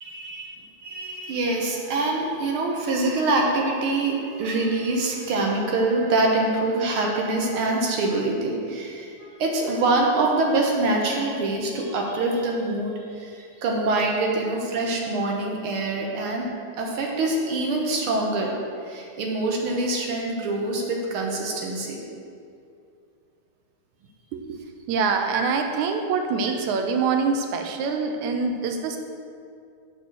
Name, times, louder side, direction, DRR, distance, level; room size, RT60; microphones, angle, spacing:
voice 1, 0.0-16.5 16.8-18.6 18.8-22.1 25.3-25.4, right 2 dB, 65° right, 0 dB, 1.4 m, -25 dB
voice 2, 24.9-29.0, right 5 dB, 80° right, 5 dB, 2.0 m, -25 dB
6.9 x 5.5 x 6.2 m, 2.4 s
omnidirectional pair, 3.4 m